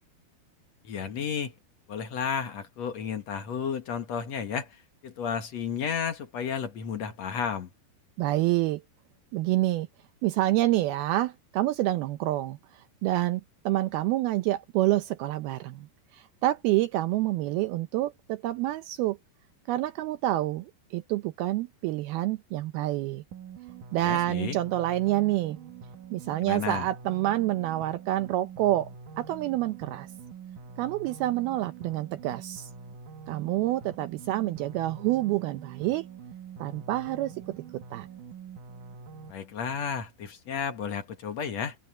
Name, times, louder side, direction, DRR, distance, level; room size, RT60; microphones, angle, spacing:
voice 1, 0.8-1.5 1.9-7.7 24.0-24.6 26.4-26.9 39.3-41.8, left 7 dB, 55° left, 2.1 m, -32 dB
voice 2, 8.2-8.8 9.3-9.9 10.2-15.9 16.1-19.2 19.7-23.2 23.9-25.6 26.1-28.9 29.2-30.1 30.8-32.7 33.3-36.1 36.6-38.1, right 16 dB, 80° right, 2.3 m, -28 dB
sound 1, 23.3-39.3, right 6 dB, 60° right, 2.7 m, -45 dB
omnidirectional pair, 5.0 m